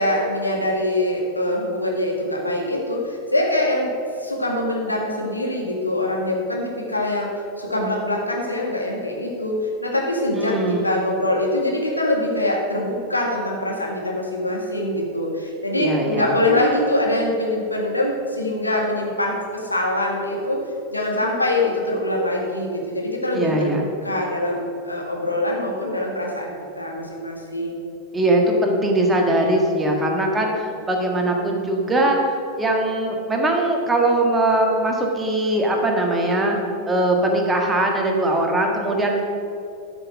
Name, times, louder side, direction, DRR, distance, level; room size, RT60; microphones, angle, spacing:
voice 1, 0.0-3.9 4.2-7.3 7.6-20.6 20.9-27.9, left 1 dB, 85° left, -1 dB, 1.8 m, -24 dB
voice 2, 10.4-10.9 15.8-16.3 23.3-23.8 28.1-36.6 36.9-39.3, right 1 dB, 15° right, 1 dB, 1.7 m, -21 dB
11.5 x 6.2 x 6.2 m, 2.7 s
figure-of-eight pair, 90°, 0 cm